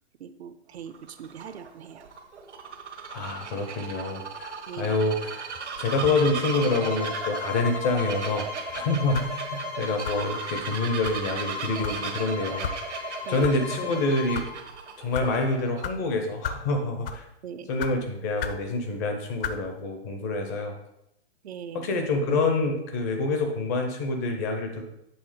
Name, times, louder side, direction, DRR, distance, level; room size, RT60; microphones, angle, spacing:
voice 1, 0.2-2.0 4.7-5.0 13.3-13.5 17.4-17.7 21.4-21.9, right 8 dB, 70° right, 11 dB, 0.6 m, -40 dB
Bird vocalization bird call bird song, 0.8-15.8, right 6 dB, 85° right, 1.3 m, -37 dB
voice 2, 3.1-5.4 5.8-8.5 8.7-13.0 13.3-14.5 15.0-17.2 17.7-20.7 21.7-24.8, left 2 dB, 15° left, 5 dB, 0.4 m, -27 dB
sound 1, 5.8-14.5, left 7 dB, 75° left, 2.2 m, -37 dB
sound 2, 9.1-9.4 10.0-10.3 11.0-11.2 11.8-12.0 12.6-12.8 13.4-13.5 14.2-14.5 15.1-15.3 15.8-16.0 16.4-16.7 17.0-17.3 17.8-17.9 18.4-18.6 19.4-19.6, left 7 dB, 55° left, 0.7 m, -33 dB
7.9 x 3.4 x 4.8 m, 0.81 s
hypercardioid pair, 150°, 34 cm